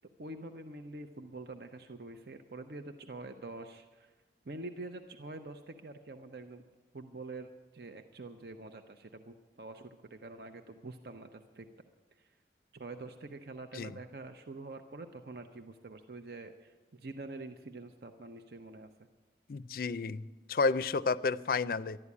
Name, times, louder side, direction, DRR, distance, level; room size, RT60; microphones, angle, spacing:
voice 1, 0.2-4.1 4.5-6.6 6.9-7.5 7.7-11.7 12.2-12.3 12.7-18.9, right 2 dB, 60° right, 6 dB, 0.7 m, -46 dB
voice 2, 19.5-20.2 20.5-22.0, left 4 dB, 55° left, 17 dB, 0.4 m, -31 dB
12.0 x 11.0 x 8.4 m, 1.3 s
head